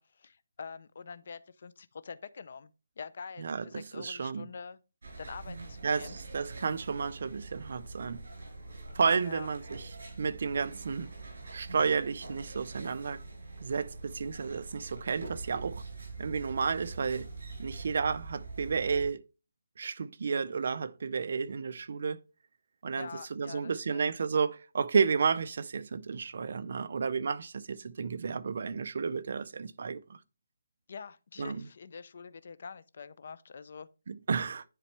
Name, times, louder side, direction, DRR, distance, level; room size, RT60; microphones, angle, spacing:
voice 1, 0.0-4.8 5.2-6.2 9.2-9.5 23.0-24.1 30.9-33.9, left 5 dB, 40° left, 0.5 m, -45 dB
voice 2, 3.4-4.5 5.8-8.2 9.0-9.9 10.2-11.1 11.5-13.2 13.6-15.8 16.2-17.3 17.6-19.2 19.8-22.2 22.8-30.2 31.4-31.7 34.1-34.6, right 5 dB, 45° right, 0.5 m, -32 dB
sound 1, 5.0-19.1, right 3 dB, 70° right, 4.6 m, -44 dB
10.0 x 4.1 x 3.3 m
hypercardioid pair, 175°, 0 cm